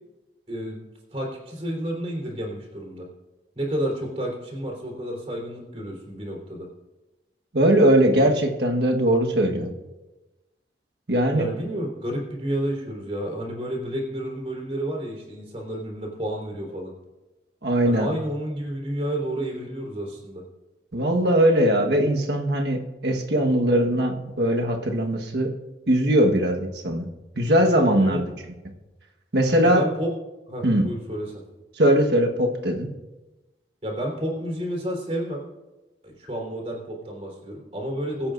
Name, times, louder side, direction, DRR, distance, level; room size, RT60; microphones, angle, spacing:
voice 1, 0.5-0.8 1.1-3.1 3.6-6.7 11.3-16.9 17.8-20.4 28.0-28.2 29.6-30.1 30.5-31.5 33.8-35.4 36.0-38.3, right 1 dB, 35° right, -1 dB, 3.6 m, -30 dB
voice 2, 7.5-9.7 11.1-11.5 17.6-18.1 20.9-25.6 25.9-27.1 27.4-28.2 29.3-29.9 30.6-30.9 31.8-32.9, right 1 dB, 70° right, 2 dB, 1.4 m, -20 dB
22.5 x 8.7 x 2.6 m, 1.1 s
head